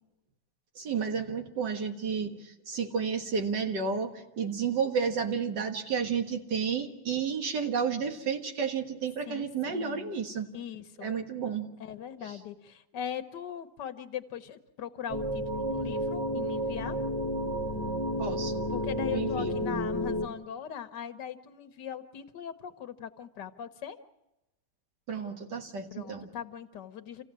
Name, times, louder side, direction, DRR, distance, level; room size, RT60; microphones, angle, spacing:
voice 1, 0.8-10.5 11.0-11.7 12.2-12.3 18.2-18.7 19.1-19.6 25.1-26.3, right 6 dB, 90° right, 5 dB, 2.3 m, -31 dB
voice 2, 9.3-10.2 10.5-11.2 11.8-17.0 18.7-24.0 25.9-27.2, left 9 dB, 85° left, 10 dB, 1.6 m, -40 dB
sound 1, 15.1-20.3, equal, 10° left, 1.2 m, -31 dB
28.0 x 15.5 x 7.4 m, 0.93 s
omnidirectional pair, 1.8 m